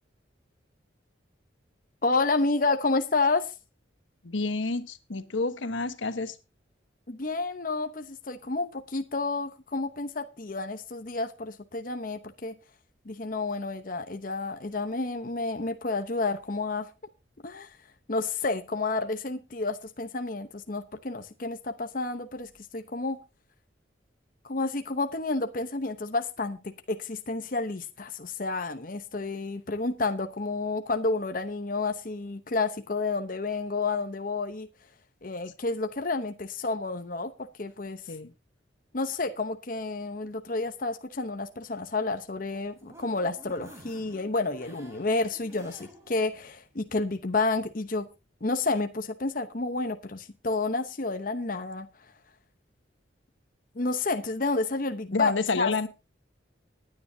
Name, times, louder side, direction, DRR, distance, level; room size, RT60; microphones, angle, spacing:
voice 1, 2.0-3.5 7.1-12.6 13.1-16.9 17.4-17.8 18.1-23.2 24.4-34.7 35.2-38.0 38.9-48.1 48.4-51.9 53.8-55.7, left 3 dB, 45° left, 0.9 m, -30 dB
voice 2, 4.2-6.4 38.1-38.3 55.1-55.9, left 3 dB, 85° left, 1.2 m, -29 dB
sound 1, 42.3-46.2 46.7-46.8 47.1-47.2, right 1 dB, 15° right, 4.1 m, -51 dB
20.0 x 9.7 x 2.8 m
head